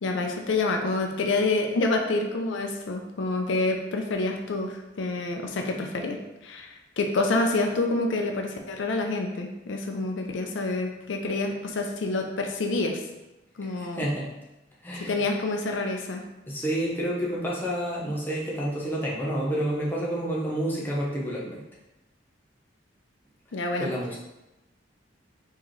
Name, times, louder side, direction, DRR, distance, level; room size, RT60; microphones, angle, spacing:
voice 1, 0.0-13.0 13.6-14.1 15.1-16.2 23.5-23.9, left 2 dB, 75° left, 3 dB, 0.5 m, -27 dB
voice 2, 13.6-14.3 14.8-15.2 16.5-21.6 23.5-24.2, right 1 dB, 10° left, -5 dB, 0.7 m, -29 dB
4.5 x 2.9 x 3.1 m, 0.97 s
head